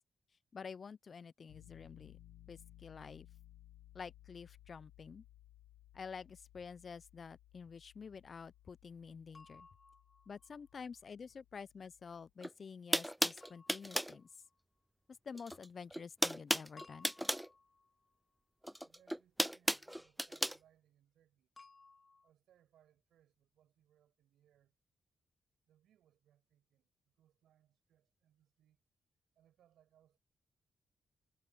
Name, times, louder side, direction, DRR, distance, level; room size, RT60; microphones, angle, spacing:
voice 1, 0.5-2.2 2.5-3.3 3.9-5.2 5.9-9.7 10.3-14.3 15.2-17.1, left 5 dB, 55° left, 0.5 m, -49 dB
Piano, 1.5-12.3, left 14 dB, 90° left, 1.1 m, -61 dB
sound 1, 9.3-10.8 13.4-14.6 16.8-18.2 21.6-22.3, left 3 dB, 40° left, 2.0 m, -61 dB
sound 2, 12.4-12.5 12.9-14.2 15.3-15.7 15.9-17.5 18.6-20.6, equal, 5° right, 0.4 m, -35 dB
voice 2, 18.6-21.5 22.2-24.8 25.6-28.8 29.4-30.2, right 11 dB, 80° right, 5.8 m, -72 dB
supercardioid pair, 50°, 0 cm